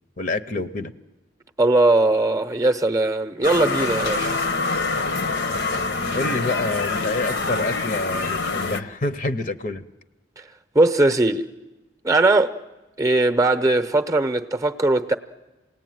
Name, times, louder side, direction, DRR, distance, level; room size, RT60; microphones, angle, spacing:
voice 1, 0.2-0.9 6.1-9.8, left 2 dB, 45° left, 0.8 m, -27 dB
voice 2, 1.6-4.4 10.7-11.5 12.0-12.5 13.0-15.1, right 2 dB, 15° right, 0.8 m, -19 dB
sound 1, 3.4-8.8, left 3 dB, 65° left, 1.0 m, -25 dB
28.0 x 18.5 x 9.3 m
head